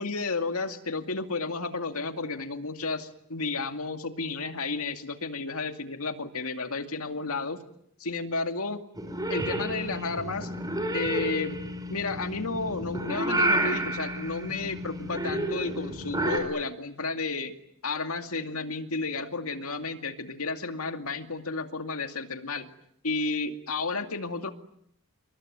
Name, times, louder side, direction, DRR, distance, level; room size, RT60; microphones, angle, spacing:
voice 1, 0.0-7.6 8.0-8.8 9.3-10.5 10.9-11.6 11.9-17.5 17.8-22.7 23.0-24.5, left 3 dB, 70° left, 7 dB, 2.4 m, -32 dB
Purr / Meow, 9.0-16.4, right 1 dB, 15° right, 5.0 m, -30 dB
28.0 x 23.0 x 9.3 m, 0.73 s
head